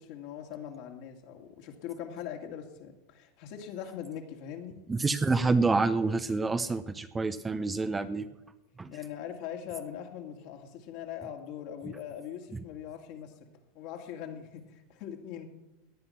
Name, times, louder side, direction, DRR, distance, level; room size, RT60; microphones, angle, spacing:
voice 1, 0.0-4.8 8.9-15.5, left 9 dB, 60° left, 3 dB, 2.5 m, -41 dB
voice 2, 4.9-8.3 8.8-8.9, right 3 dB, 15° right, 11 dB, 0.9 m, -27 dB
17.5 x 9.8 x 5.8 m, 0.98 s
hypercardioid pair, 105°, 0 cm